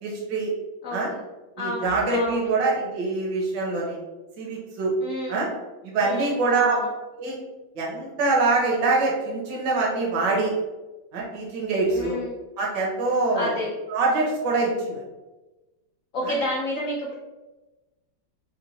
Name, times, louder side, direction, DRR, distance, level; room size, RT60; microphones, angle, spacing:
voice 1, 0.0-0.5 0.9-1.1 1.6-4.0 4.4-4.9 5.3-5.5 5.8-6.8 7.2-7.4 7.7-10.5 11.1-12.2 12.6-13.5 13.9-15.0 16.2-16.3, right 3 dB, 65° right, -3 dB, 1.5 m, -24 dB
voice 2, 0.8-1.2 1.6-2.5 5.0-5.4 6.0-6.9 11.9-12.3 13.3-13.7 16.1-17.1, left 1 dB, 65° left, -5 dB, 0.8 m, -30 dB
4.3 x 2.2 x 4.0 m, 1.1 s
omnidirectional pair, 2.2 m